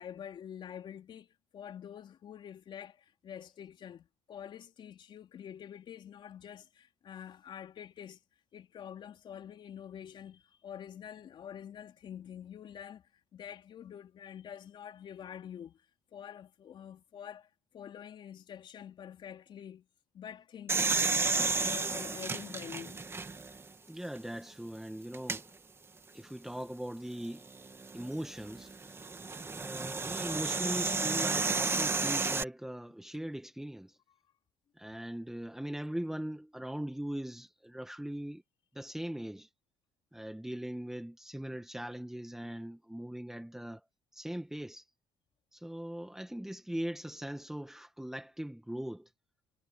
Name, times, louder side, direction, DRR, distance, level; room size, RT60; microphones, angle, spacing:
voice 1, 0.0-8.2 8.5-15.9 16.1-19.9 20.1-23.1, left 9 dB, 55° left, 4.1 m, -47 dB
sound 1, 20.7-23.6 24.2-24.3 25.1-25.4 27.5-32.4, right 4 dB, 25° right, 2.6 m, -32 dB
voice 2, 23.9-25.5 26.1-27.5 27.9-28.9 29.5-34.0 34.8-38.4 38.7-39.5 40.1-43.8 44.1-44.8 45.5-49.1, right 1 dB, 5° right, 1.9 m, -40 dB
supercardioid pair, 80°, 10 cm